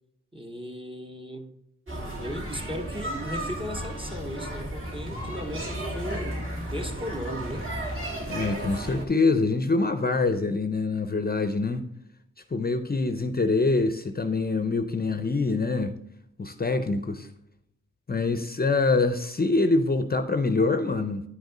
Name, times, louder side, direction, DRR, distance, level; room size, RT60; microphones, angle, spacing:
voice 1, 0.3-1.5 2.2-7.7, equal, 15° right, 0.9 m, -36 dB
sound 1, 1.9-9.1, right 1 dB, 40° right, 2.5 m, -34 dB
voice 2, 8.3-11.8 12.5-16.0 16.4-17.3 18.1-21.2, left 3 dB, 30° left, 0.6 m, -25 dB
9.9 x 5.2 x 3.8 m
wide cardioid pair, 100°, 31 cm